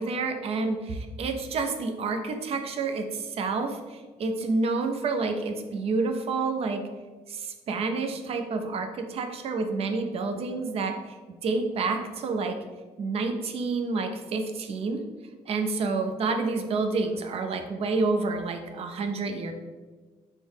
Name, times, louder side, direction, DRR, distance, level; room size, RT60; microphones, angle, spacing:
voice 1, 0.0-6.9 7.3-11.2 11.4-12.6 13.0-15.0 15.5-19.5, right 3 dB, 50° right, 6 dB, 0.4 m, -29 dB
3.4 x 2.0 x 3.8 m, 1.3 s
cardioid pair, 120°, 13 cm